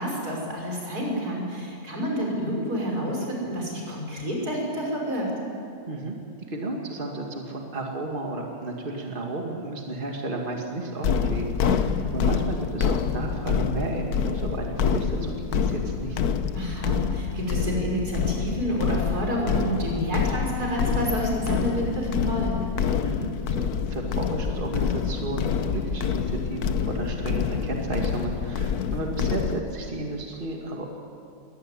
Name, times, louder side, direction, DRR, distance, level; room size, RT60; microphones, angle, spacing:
voice 1, 0.0-5.3 11.6-12.1 16.5-22.7, equal, 90° right, -1 dB, 6.0 m, -29 dB
voice 2, 6.5-16.2 23.0-30.9, right 2 dB, 35° right, 1 dB, 2.3 m, -33 dB
sound 1, 11.0-29.6, left 7 dB, 85° left, 1.4 m, -27 dB
22.0 x 17.5 x 9.8 m, 2.5 s
omnidirectional pair, 1.6 m